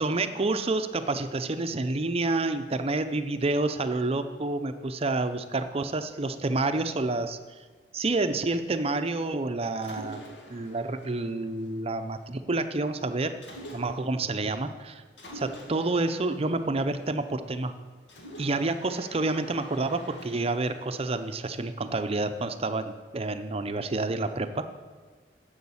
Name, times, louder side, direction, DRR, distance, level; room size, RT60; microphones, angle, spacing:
voice 1, 0.0-7.4 7.9-10.2 10.5-13.4 13.7-15.0 15.3-17.7 18.4-24.6, right 2 dB, 35° right, 9 dB, 0.6 m, -29 dB
Mechanisms, 9.8-12.2 13.4-14.3 15.2-17.5 18.1-22.2, equal, 80° left, 2.2 m, -47 dB
10.5 x 7.7 x 7.1 m, 1.4 s
head